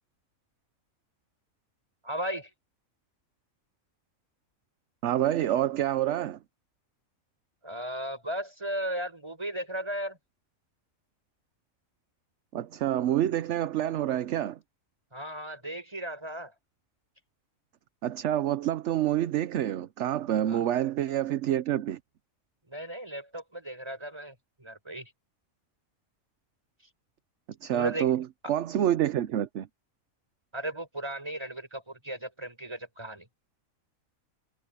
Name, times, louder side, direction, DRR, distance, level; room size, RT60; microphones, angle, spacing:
voice 1, 2.0-2.5 7.6-10.2 15.1-16.5 20.5-20.6 22.7-25.1 27.7-28.1 28.4-28.5 30.5-33.3, right 1 dB, 20° right, 5.4 m, -36 dB
voice 2, 5.0-6.4 12.5-14.6 18.0-22.0 27.6-29.7, right 11 dB, 65° right, 0.9 m, -27 dB
omnidirectional pair, 1.4 m